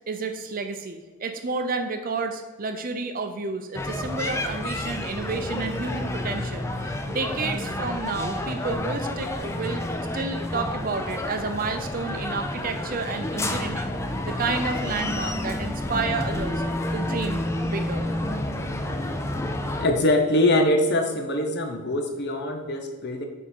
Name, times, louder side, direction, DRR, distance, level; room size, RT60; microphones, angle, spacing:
voice 1, 0.0-9.9 10.1-14.0 14.3-16.6 16.9-18.1, right 4 dB, 40° right, 7 dB, 0.6 m, -31 dB
sound 1, 3.7-19.9, left 1 dB, 15° left, 0.4 m, -29 dB
voice 2, 19.8-23.3, left 1 dB, 50° left, 4 dB, 0.8 m, -23 dB
6.8 x 3.6 x 4.4 m, 1.3 s
head